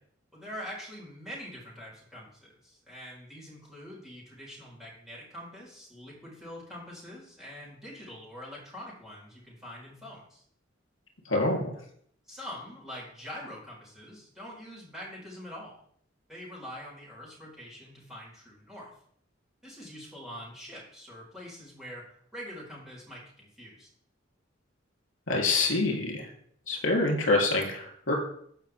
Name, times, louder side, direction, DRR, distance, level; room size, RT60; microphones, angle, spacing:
voice 1, 0.3-10.4 12.3-15.8 16.3-18.9 19.6-22.1 22.3-23.9, equal, ahead, -6 dB, 4.7 m, -44 dB
voice 2, 11.2-11.7 25.3-26.3 26.7-28.1, left 2 dB, 75° left, 1 dB, 3.3 m, -26 dB
17.0 x 5.7 x 3.6 m, 0.64 s
head